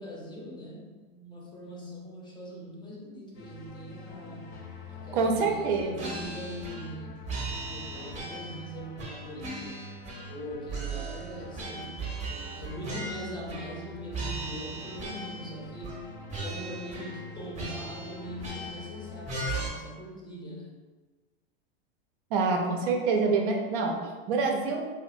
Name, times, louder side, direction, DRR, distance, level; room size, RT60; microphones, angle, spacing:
voice 1, 0.0-4.6 4.9-9.8 10.3-16.0 16.4-20.8, equal, 15° left, -3 dB, 0.5 m, -41 dB
sound 1, 3.3-19.4, left 2 dB, 75° left, 0.7 m, -45 dB
voice 2, 5.1-6.2 22.3-24.0 24.3-24.9, right 4 dB, 60° right, 2 dB, 0.5 m, -26 dB
sound 2, 6.0-7.0 7.3-8.6 9.0-10.4 10.7-13.9 14.1-15.5 15.8-16.0 16.3-17.3 17.5-18.9 19.3-19.7, right 3 dB, 25° right, 0.7 m, -38 dB
2.6 x 2.4 x 2.5 m, 1.4 s
hypercardioid pair, 95°, 30 cm